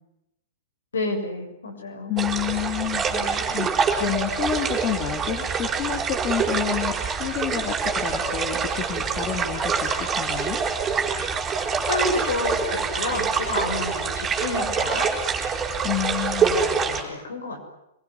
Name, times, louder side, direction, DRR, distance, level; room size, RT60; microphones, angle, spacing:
voice 1, 0.9-2.1 3.1-3.6 11.9-15.1 16.4-17.6, left 2 dB, 70° left, 4 dB, 7.1 m, -30 dB
voice 2, 2.1-6.9 7.2-10.6 15.8-16.5, left 10 dB, 30° left, 4 dB, 3.1 m, -29 dB
sound 1, 2.2-17.0, right 5 dB, 20° right, 5.6 m, -25 dB
26.5 x 23.5 x 9.6 m, 0.85 s
figure-of-eight pair, 105°, 0 cm